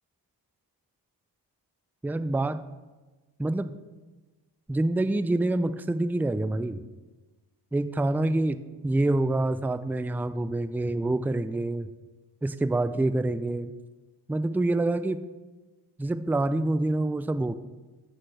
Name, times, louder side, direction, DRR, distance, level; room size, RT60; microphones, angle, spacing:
voice 1, 2.0-2.6 3.4-3.8 4.7-6.8 7.7-8.6 8.8-11.9 12.4-13.7 14.3-15.2 16.0-17.5, right 2 dB, 5° right, 13 dB, 0.4 m, -26 dB
15.5 x 5.9 x 3.3 m, 1.2 s
supercardioid pair, 40°, 47 cm